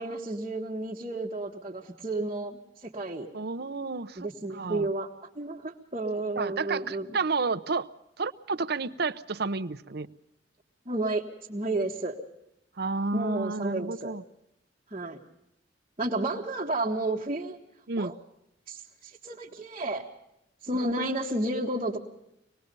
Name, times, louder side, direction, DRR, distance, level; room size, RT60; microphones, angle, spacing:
voice 1, 0.0-3.3 4.2-7.2 10.8-11.2 11.5-12.1 13.1-14.1 14.9-15.2 16.0-17.6 18.0-18.1 18.7-20.0 20.6-22.0, right 2 dB, 35° right, -3 dB, 1.6 m, -31 dB
voice 2, 3.3-4.9 6.4-7.9 8.2-10.1 12.8-14.2 17.9-18.1 20.7-20.9, right 4 dB, 60° right, 10 dB, 0.8 m, -31 dB
25.0 x 20.0 x 5.4 m, 0.83 s
head